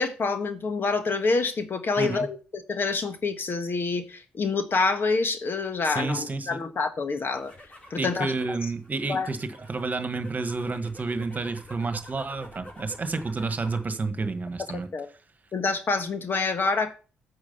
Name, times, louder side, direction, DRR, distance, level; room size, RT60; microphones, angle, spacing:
voice 1, 0.0-2.4 2.7-7.5 7.9-8.3 9.1-9.3 14.7-15.1 15.5-16.9, left 4 dB, 50° left, 1.4 m, -27 dB
voice 2, 2.0-2.3 5.8-6.6 7.9-14.9, right 3 dB, 35° right, 1.5 m, -30 dB
sound 1, 7.2-13.9 14.3-14.8, equal, 25° left, 4.6 m, -48 dB
8.9 x 6.2 x 5.6 m
supercardioid pair, 50°, 5 cm